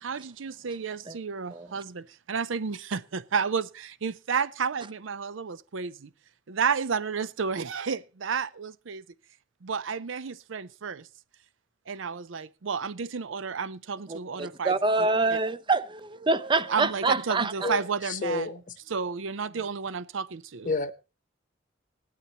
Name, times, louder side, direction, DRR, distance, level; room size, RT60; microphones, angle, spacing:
voice 1, 0.0-6.1 6.5-9.0 9.6-11.1 11.9-15.4 16.7-18.6 18.9-20.7, right 6 dB, 70° right, 0.6 m, -31 dB
voice 2, 14.1-17.7, right 3 dB, 25° right, 0.6 m, -26 dB
voice 3, 18.1-18.6 20.6-20.9, left 3 dB, 45° left, 1.0 m, -29 dB
18.0 x 12.0 x 2.9 m
head